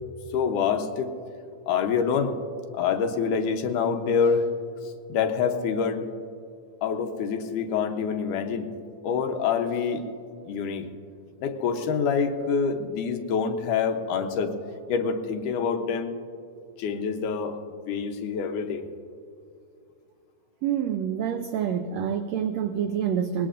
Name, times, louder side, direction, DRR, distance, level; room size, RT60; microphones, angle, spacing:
voice 1, 0.3-1.1 1.7-2.4 2.7-4.5 4.8-6.1 6.8-8.7 9.0-10.0 10.5-10.9 11.4-14.5 14.9-16.1 16.8-17.6 17.9-18.8, left 6 dB, 80° left, 5 dB, 2.4 m, -26 dB
voice 2, 20.6-23.5, right 8 dB, 85° right, 7 dB, 1.4 m, -27 dB
21.5 x 19.5 x 2.5 m, 2.5 s
omnidirectional pair, 3.7 m